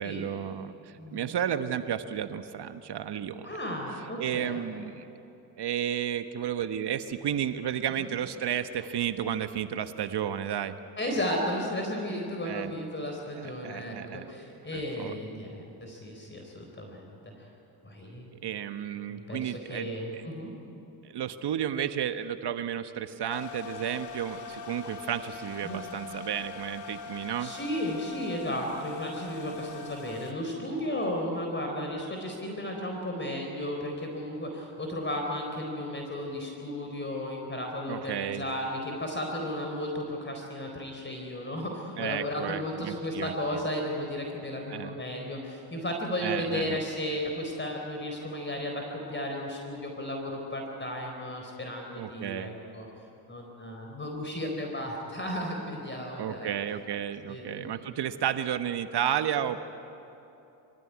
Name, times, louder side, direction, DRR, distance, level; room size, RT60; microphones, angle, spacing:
voice 1, 0.0-3.6 4.2-5.1 5.6-10.7 12.4-12.7 13.3-14.3 14.7-15.2 18.3-20.3 21.0-27.5 37.9-38.4 42.0-43.6 44.7-44.9 46.2-46.8 52.0-52.5 56.2-59.6, right 9 dB, 55° right, 10 dB, 1.3 m, -32 dB
voice 2, 1.0-1.3 3.4-4.6 8.0-8.1 11.0-17.3 17.8-18.3 19.1-20.5 25.6-25.8 27.4-48.8 49.1-52.9 53.3-56.5 57.3-57.8, left 1 dB, 25° left, 1 dB, 4.2 m, -34 dB
sound 1, 23.3-30.3, left 5 dB, 55° left, 2.4 m, -42 dB
25.0 x 16.0 x 9.6 m, 2.9 s
supercardioid pair, 70°, 49 cm